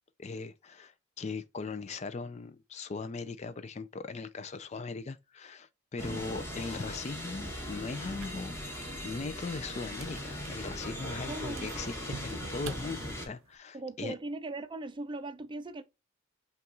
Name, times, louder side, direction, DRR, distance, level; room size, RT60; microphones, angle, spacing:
voice 1, 0.2-14.1, left 4 dB, 35° left, 0.4 m, -39 dB
sound 1, 6.0-13.3, equal, 10° left, 1.1 m, -39 dB
sound 2, 8.1-13.6, right 4 dB, 80° right, 0.6 m, -49 dB
voice 2, 11.2-11.7 13.7-15.8, right 2 dB, 25° right, 0.5 m, -39 dB
5.6 x 2.4 x 3.9 m
head